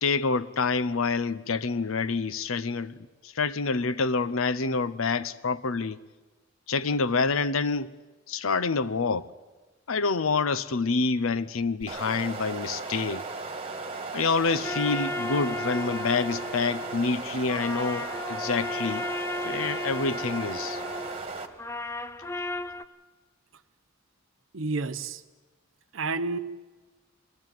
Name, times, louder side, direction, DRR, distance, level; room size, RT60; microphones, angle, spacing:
voice 1, 0.0-6.0 6.7-7.9 8.3-9.3 9.9-13.2 14.1-19.1 19.4-20.8, left 4 dB, 85° left, 0.8 m, -27 dB
sound 1, 11.8-21.5, right 3 dB, 30° right, 1.7 m, -36 dB
sound 2, 14.6-22.8, left 2 dB, 15° left, 0.7 m, -35 dB
voice 2, 24.5-25.2 25.9-26.4, right 3 dB, 70° right, 0.9 m, -30 dB
21.5 x 16.0 x 9.2 m
head